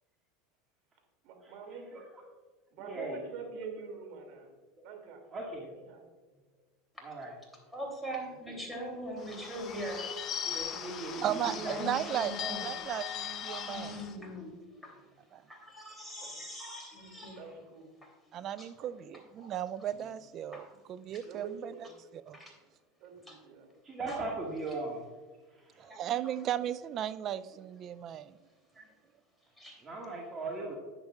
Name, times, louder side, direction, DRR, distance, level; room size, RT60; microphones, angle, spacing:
voice 1, 1.2-1.9 2.7-4.5 4.8-5.2 5.5-6.0 10.5-11.1 14.8-15.1 16.2-16.4 17.3-17.9 18.8-18.9 21.2-21.9 23.0-23.7, right 5 dB, 60° right, 2 dB, 2.6 m, -46 dB
voice 2, 2.8-3.2 5.3-5.7 7.0-7.3 10.5-11.8 23.8-25.0 25.5-25.9 29.8-30.7, right 2 dB, 30° right, -2 dB, 1.9 m, -38 dB
voice 3, 7.7-10.1 10.5-10.6 11.1-13.0 13.4-14.5 14.8-15.0 15.5-17.5 18.6-18.7 19.4-19.5 19.9-20.1 20.5-20.6 21.1-21.2 22.3-22.6 23.3-23.4 24.1-24.2 25.9-26.0 28.7-28.9 29.6-29.8, equal, ahead, -1 dB, 3.0 m, -42 dB
Bird / Bell, 9.2-14.2, left 8 dB, 40° left, 1.0 m, -39 dB
voice 4, 11.2-14.0 15.3-15.4 18.3-21.7 22.1-22.4 25.8-28.3, right 11 dB, 45° right, 15 dB, 0.4 m, -36 dB
10.5 x 9.5 x 2.4 m, 1.4 s
hypercardioid pair, 90°, 0 cm